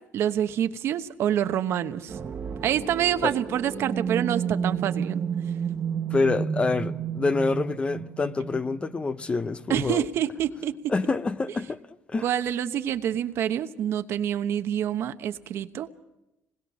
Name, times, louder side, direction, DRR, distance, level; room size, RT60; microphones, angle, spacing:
voice 1, 0.1-2.2 2.6-5.2 9.7-10.9 12.2-15.9, right 10 dB, 60° right, 1.0 m, -27 dB
sound 1, 2.1-9.8, right 7 dB, 40° right, 1.2 m, -31 dB
voice 2, 6.1-10.0 10.9-11.8 12.1-12.3, left 3 dB, 25° left, 0.7 m, -26 dB
26.5 x 20.5 x 6.3 m
cardioid pair, 110°, 5 cm